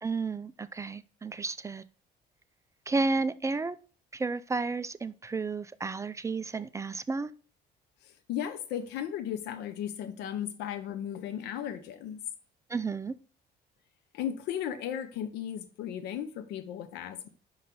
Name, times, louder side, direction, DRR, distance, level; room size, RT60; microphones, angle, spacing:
voice 1, 0.0-1.8 2.9-3.8 4.1-7.3 12.7-13.2, right 3 dB, 20° right, 0.3 m, -32 dB
voice 2, 8.0-12.2 14.1-17.3, left 10 dB, 85° left, 0.9 m, -36 dB
5.6 x 5.6 x 3.8 m
cardioid pair, 110°, 17 cm